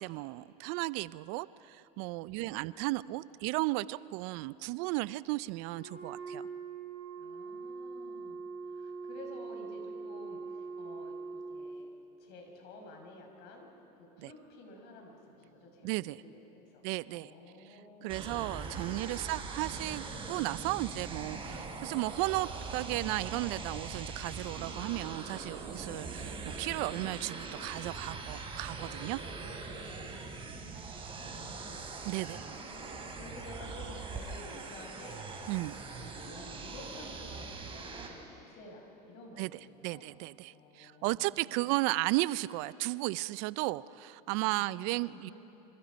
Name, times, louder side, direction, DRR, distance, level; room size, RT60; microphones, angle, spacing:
voice 1, 0.0-6.5 14.2-14.3 15.8-16.2 16.8-17.3 18.0-29.2 32.0-32.4 35.5-35.7 39.4-39.5 39.8-45.3, right 20 dB, 65° right, 19 dB, 0.5 m, -34 dB
voice 2, 2.2-2.6 7.2-11.9 12.2-13.7 14.0-18.4 18.8-19.7 21.5-21.7 25.8-26.1 29.8-31.9 32.2-32.4 32.7-35.2 35.6-40.1 40.5-41.6 44.6-45.2, left 2 dB, 60° left, 2 dB, 6.2 m, -52 dB
Wind instrument woodwind instrument, 5.6-11.8, right 4 dB, 40° left, 4.7 m, -42 dB
sound 1, 18.1-38.1, right 4 dB, 25° right, 4.8 m, -42 dB
26.0 x 26.0 x 5.3 m, 3.0 s
supercardioid pair, 100°, 20 cm